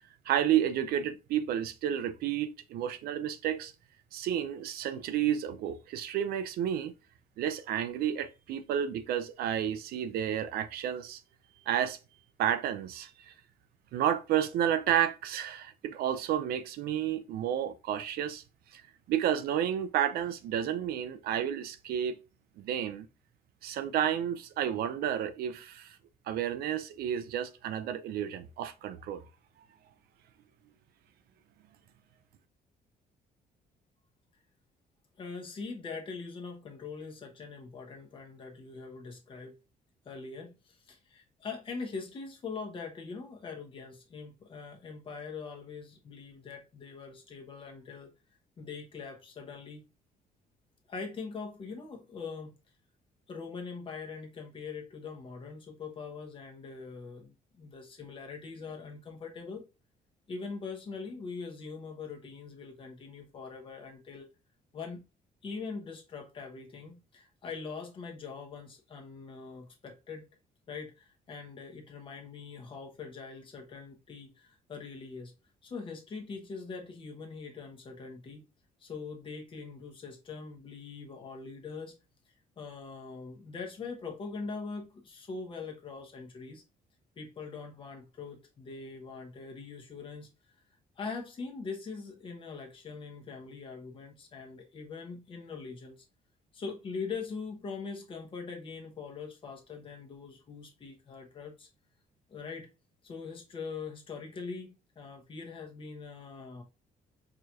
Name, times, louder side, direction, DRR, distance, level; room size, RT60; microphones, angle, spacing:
voice 1, 0.3-3.7 4.1-6.9 7.4-11.2 11.7-12.0 12.4-13.3 13.9-18.4 18.7-18.8 19.1-22.2 22.6-23.1 23.6-26.0 26.3-29.2, right 10 dB, 80° right, 0.5 m, -31 dB
voice 2, 35.2-39.6 40.0-48.1 48.6-49.8 50.9-52.6 53.3-59.6 60.3-64.3 64.7-65.1 65.4-70.3 70.7-75.3 75.6-78.4 78.8-81.9 82.6-86.6 87.2-90.3 91.0-96.0 96.5-101.7 102.3-102.7 103.0-106.6, left 4 dB, 35° left, 0.9 m, -42 dB
4.8 x 2.9 x 2.4 m
cardioid pair, 160°, 16 cm